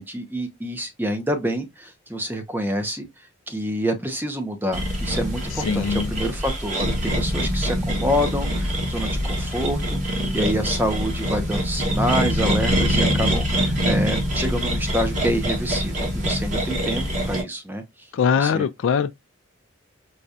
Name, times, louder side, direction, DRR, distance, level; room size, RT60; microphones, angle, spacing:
voice 1, 0.0-3.1 3.5-17.8 18.4-18.7, equal, 10° right, 0.6 m, -27 dB
sound 1, 4.7-17.4, equal, 35° right, 1.2 m, -24 dB
voice 2, 5.6-6.1 18.1-19.1, left 6 dB, 65° left, 0.3 m, -22 dB
4.8 x 2.2 x 2.6 m
head